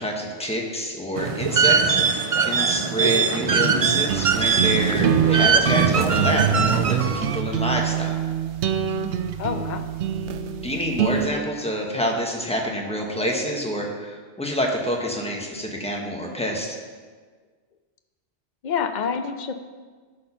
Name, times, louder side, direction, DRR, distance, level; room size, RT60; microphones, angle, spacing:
voice 1, 0.0-2.0 2.4-8.2 10.6-16.8, equal, 5° left, 0 dB, 1.2 m, -27 dB
sound 1, 1.2-7.4, right 5 dB, 50° right, 0.4 m, -21 dB
sound 2, 4.1-11.3, right 9 dB, 80° right, 0.9 m, -25 dB
voice 2, 9.4-9.9 18.6-19.5, left 6 dB, 50° left, 8 dB, 0.7 m, -27 dB
12.5 x 4.3 x 5.6 m, 1.5 s
omnidirectional pair, 1.1 m